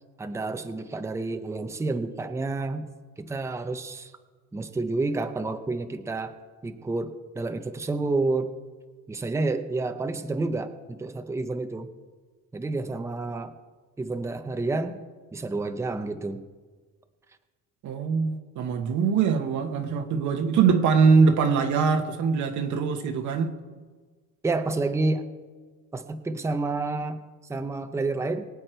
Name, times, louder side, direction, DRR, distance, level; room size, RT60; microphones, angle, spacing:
voice 1, 0.2-2.9 3.2-4.1 4.5-6.3 6.6-8.5 9.1-11.9 12.5-13.6 14.0-15.0 15.3-16.5 24.4-25.2 25.9-27.2 27.5-28.5, right 3 dB, 10° right, 0.6 m, -29 dB
voice 2, 17.8-23.6, right 5 dB, 60° right, 1.2 m, -22 dB
23.0 x 8.5 x 4.5 m
cardioid pair, 155°, 33 cm